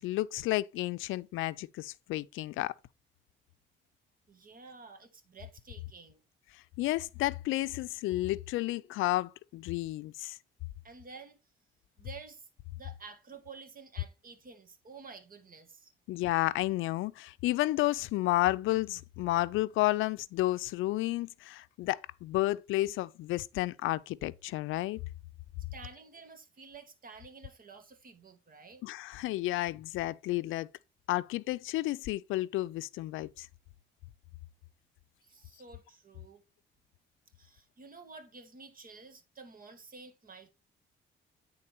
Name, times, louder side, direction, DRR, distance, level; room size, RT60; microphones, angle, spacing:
voice 1, 0.0-2.7 6.8-10.4 16.1-25.0 28.8-30.7 31.1-33.5, left 17 dB, 90° left, 0.5 m, -31 dB
voice 2, 4.3-6.2 10.8-11.4 12.0-15.9 25.7-28.8 35.2-36.4 37.3-40.5, right 4 dB, 45° right, 1.9 m, -51 dB
9.9 x 3.8 x 4.4 m
cardioid pair, 90°, 20 cm